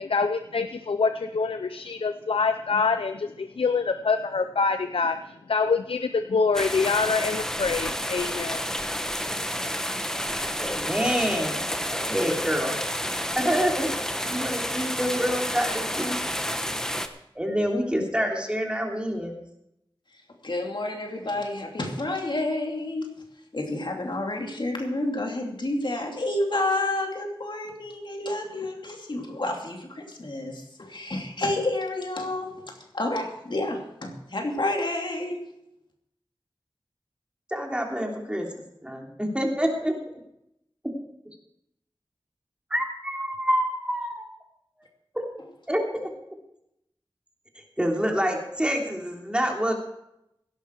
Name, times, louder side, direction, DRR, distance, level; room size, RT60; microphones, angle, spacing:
voice 1, 0.0-5.2 5.5-8.7, left 4 dB, 85° left, 9 dB, 0.6 m, -25 dB
sound 1, 6.5-17.1, equal, 5° left, 1.2 m, -30 dB
voice 2, 10.6-11.6 11.9-12.7 13.3-13.9 14.3-16.2 17.3-19.4 37.5-40.0 42.7-44.3 45.1-45.2 45.7-46.1 47.8-49.8, equal, 10° right, 1 dB, 3.2 m, -27 dB
voice 3, 20.4-23.1 23.5-35.4, left 2 dB, 60° left, 2 dB, 2.8 m, -29 dB
17.0 x 11.5 x 4.7 m, 0.80 s
wide cardioid pair, 65°, 9 cm